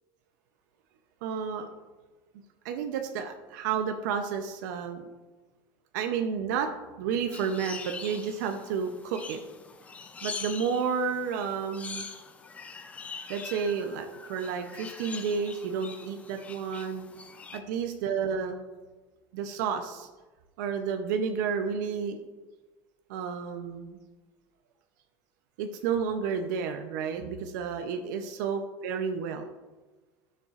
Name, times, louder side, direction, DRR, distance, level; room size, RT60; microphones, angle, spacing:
voice 1, 1.2-1.7 2.6-5.1 5.9-6.7 7.0-9.4 10.2-12.1 13.3-17.1 17.5-18.6 19.3-20.1 20.6-22.2 23.1-24.0 25.6-29.5, right 6 dB, 85° right, 5 dB, 0.7 m, -31 dB
sound 1, 7.3-17.6, left 5 dB, 15° left, 0.4 m, -43 dB
11.0 x 6.7 x 2.5 m, 1.2 s
cardioid pair, 165°, 10 cm